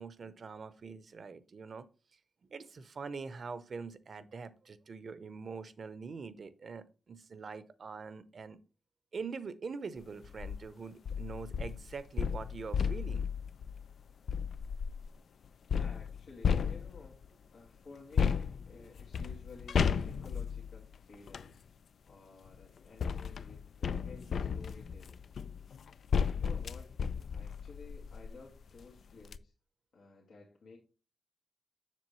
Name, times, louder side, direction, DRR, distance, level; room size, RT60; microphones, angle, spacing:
voice 1, 0.0-1.8 2.5-8.6 9.1-13.3 18.7-18.8, right 5 dB, 55° right, 0.7 m, -44 dB
sound 1, 10.2-10.6 11.1-15.1 15.7-17.3 18.2-21.5 22.5-28.4 28.8-28.9 29.2-29.4, left 6 dB, 75° left, 0.4 m, -34 dB
voice 2, 15.7-17.2 17.5-21.6 22.1-25.2 26.4-26.9 27.3-29.5 29.9-30.8, left 4 dB, 90° left, 1.7 m, -54 dB
7.6 x 6.7 x 3.1 m
wide cardioid pair, 110°, 0 cm